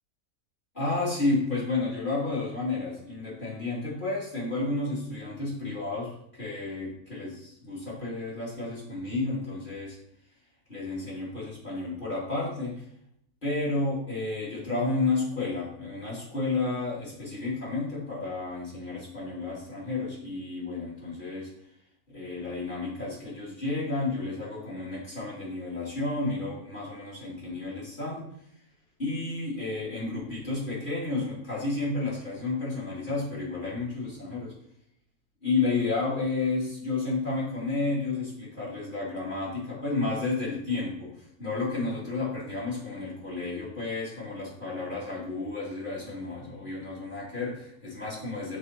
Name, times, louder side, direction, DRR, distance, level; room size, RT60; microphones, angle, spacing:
voice 1, 0.7-10.0 10.7-12.8 13.4-21.5 22.1-28.3 29.0-34.5 35.4-48.6, left 3 dB, 30° left, -6 dB, 2.6 m, -31 dB
6.7 x 3.7 x 4.3 m, 0.72 s
omnidirectional pair, 1.6 m